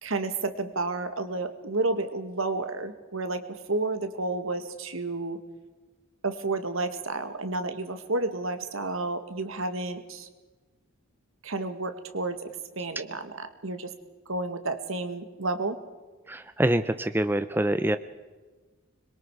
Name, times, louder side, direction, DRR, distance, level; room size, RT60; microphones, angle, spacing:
voice 1, 0.0-5.4 6.2-10.3 11.4-13.9 14.3-15.8, right 2 dB, 70° right, 9 dB, 2.0 m, -31 dB
voice 2, 16.3-18.0, right 1 dB, 10° right, 11 dB, 0.6 m, -25 dB
25.5 x 22.5 x 4.9 m, 1.3 s
head